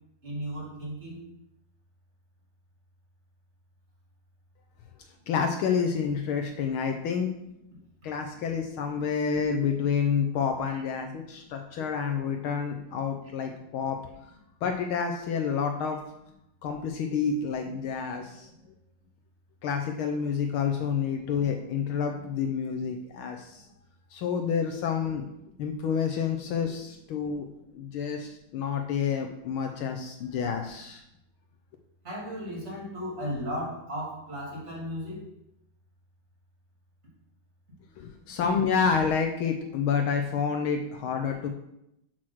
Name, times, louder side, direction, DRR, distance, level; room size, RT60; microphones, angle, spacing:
voice 1, 0.2-1.2 32.0-35.3, equal, 30° right, -4 dB, 3.2 m, -35 dB
voice 2, 5.3-7.3 8.0-14.0 14.6-16.0 16.6-18.5 19.6-23.6 24.1-25.2 25.6-27.5 27.7-31.0 38.0-41.5, left 6 dB, 75° left, 4 dB, 1.5 m, -29 dB
6.3 x 6.0 x 6.2 m, 0.81 s
omnidirectional pair, 2.4 m